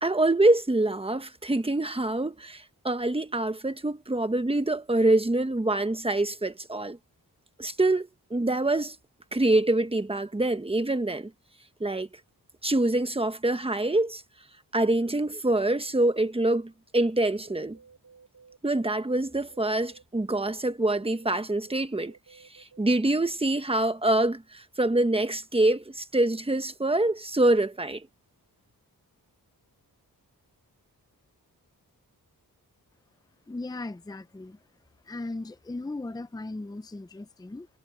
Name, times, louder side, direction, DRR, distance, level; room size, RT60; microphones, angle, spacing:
voice 1, 0.0-7.0 7.6-9.0 9.3-11.3 11.8-12.1 12.6-14.2 14.7-17.8 18.6-22.1 22.5-28.0, right 2 dB, 15° right, 1.2 m, -25 dB
sound 1, 17.4-20.0 20.3-22.8, right 5 dB, 55° right, 6.4 m, -55 dB
voice 2, 33.5-34.6 35.1-37.7, left 2 dB, 10° left, 0.6 m, -37 dB
wide cardioid pair, 125°, 37 cm